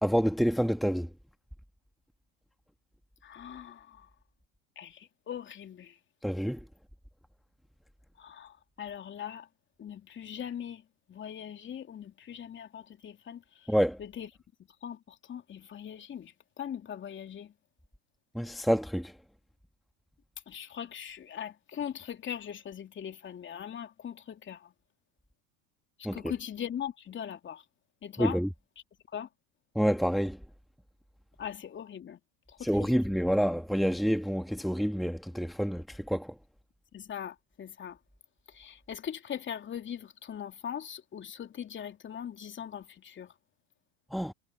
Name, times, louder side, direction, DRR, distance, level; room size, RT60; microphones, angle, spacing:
voice 1, 0.0-1.1 6.2-6.6 13.7-14.0 18.3-19.1 26.0-26.3 28.2-28.5 29.7-30.4 32.6-36.3 44.1-44.3, equal, ahead, 1.7 m, -28 dB
voice 2, 3.2-3.9 4.8-5.0 5.3-5.9 8.2-8.5 8.8-9.4 9.8-10.8 11.1-13.4 14.0-14.3 14.8-15.0 15.3-16.3 16.6-17.5 20.5-24.6 26.1-27.6 28.0-28.4 29.1-29.3 31.4-32.2 36.9-38.0 38.6-43.3, left 9 dB, 30° left, 3.0 m, -40 dB
hypercardioid pair, 85°, 39 cm